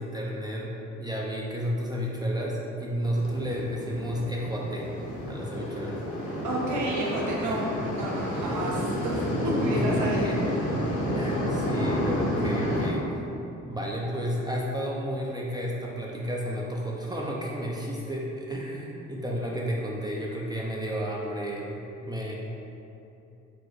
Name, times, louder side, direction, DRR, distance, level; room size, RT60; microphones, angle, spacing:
voice 1, 0.0-4.9 5.3-6.0 9.7-10.4 11.1-13.1 13.7-22.4, equal, 15° right, -3 dB, 0.5 m, -32 dB
sound 1, 3.0-12.9, equal, 70° left, 1.0 m, -30 dB
voice 2, 6.4-7.7 7.9-9.1 9.4-10.3, right 1 dB, 75° right, -4 dB, 1.0 m, -30 dB
4.3 x 2.1 x 4.6 m, 2.8 s
cardioid pair, 90°, 30 cm